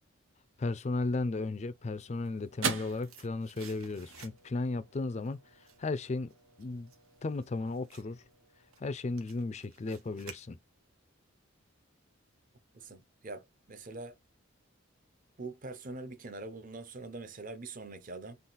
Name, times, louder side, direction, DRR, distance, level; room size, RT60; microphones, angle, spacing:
voice 1, 0.6-5.4 5.8-6.3 6.6-6.9 7.2-8.2 8.8-10.6, left 3 dB, 30° left, 0.4 m, -35 dB
sound 1, 1.3-9.9, right 5 dB, 70° right, 1.2 m, -44 dB
sound 2, 2.8-4.7 5.1-11.0 11.3-11.4, right 6 dB, 85° right, 1.1 m, -56 dB
voice 2, 12.7-14.2 15.4-18.4, right 3 dB, 40° right, 0.7 m, -43 dB
3.9 x 2.4 x 3.9 m
head